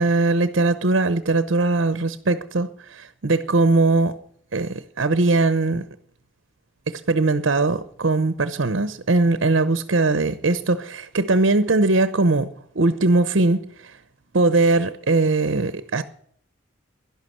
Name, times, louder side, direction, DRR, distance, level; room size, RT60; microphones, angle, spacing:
voice 1, 0.0-4.2 4.5-5.8 6.9-12.5 12.7-13.9 14.3-16.0, right 3 dB, 70° right, 0.8 m, -20 dB
11.5 x 11.5 x 7.9 m
head